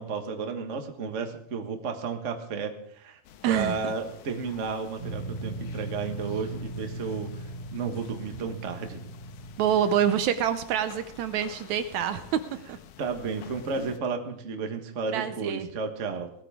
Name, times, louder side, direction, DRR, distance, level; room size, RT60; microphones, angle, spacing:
voice 1, 0.0-3.2 3.4-9.0 13.0-16.3, right 5 dB, 55° right, 5 dB, 0.8 m, -33 dB
sound 1, 3.2-14.0, left 9 dB, 80° left, 2.4 m, -49 dB
voice 2, 3.4-3.9 9.6-12.2 12.7-12.8 15.1-15.7, right 9 dB, 75° right, 10 dB, 1.8 m, -26 dB
sound 2, 5.0-10.0, right 1 dB, 30° left, 3.7 m, -38 dB
18.5 x 13.5 x 3.5 m, 0.73 s
omnidirectional pair, 3.7 m